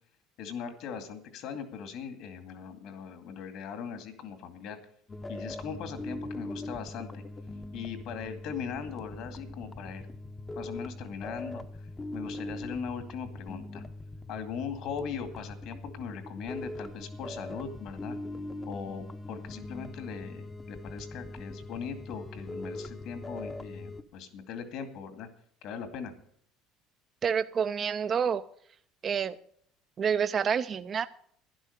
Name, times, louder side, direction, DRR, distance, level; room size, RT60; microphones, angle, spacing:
voice 1, 0.4-4.8 5.3-7.2 7.7-10.1 10.6-13.8 14.3-18.2 18.6-25.3 25.6-26.1, left 6 dB, 60° left, 8 dB, 2.3 m, -40 dB
sound 1, 5.1-24.0, left 2 dB, 15° left, 0.8 m, -41 dB
voice 2, 27.2-28.5 29.0-29.4 30.0-31.1, right 7 dB, 30° right, 10 dB, 0.5 m, -28 dB
12.0 x 11.0 x 6.7 m, 0.63 s
cardioid pair, 135°, 0 cm